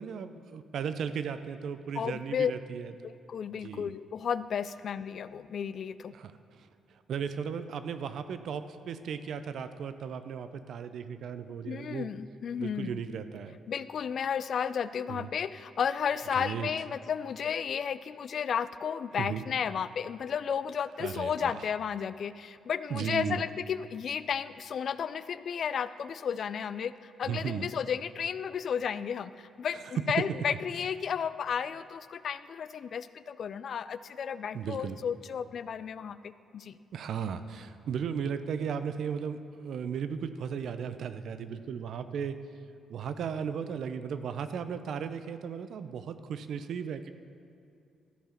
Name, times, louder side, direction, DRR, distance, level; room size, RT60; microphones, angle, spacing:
voice 1, 0.0-3.1 3.6-3.9 6.1-12.1 12.6-13.6 15.1-15.3 16.4-16.7 19.2-19.4 21.0-21.7 22.9-23.4 27.2-27.7 30.2-30.3 34.5-35.0 36.9-42.4 42.9-47.1, right 7 dB, 70° right, 11 dB, 0.5 m, -36 dB
voice 2, 2.0-2.5 3.3-6.1 11.7-13.0 13.7-36.8, left 7 dB, 55° left, 15 dB, 0.3 m, -33 dB
13.5 x 4.7 x 5.8 m, 2.7 s
cardioid pair, 100°, 0 cm